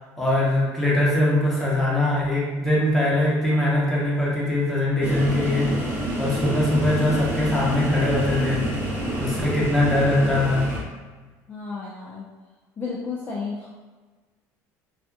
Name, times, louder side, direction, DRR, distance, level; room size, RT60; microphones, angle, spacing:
voice 1, 0.2-5.7 6.2-8.7 9.2-10.7, left 1 dB, 5° left, -7 dB, 0.8 m, -22 dB
sound 1, 5.0-10.8, right 1 dB, 25° right, 0.7 m, -28 dB
voice 2, 11.5-12.2 12.8-13.7, left 4 dB, 25° left, -6 dB, 0.4 m, -32 dB
2.7 x 2.4 x 2.3 m, 1.3 s
cardioid pair, 130°, 7 cm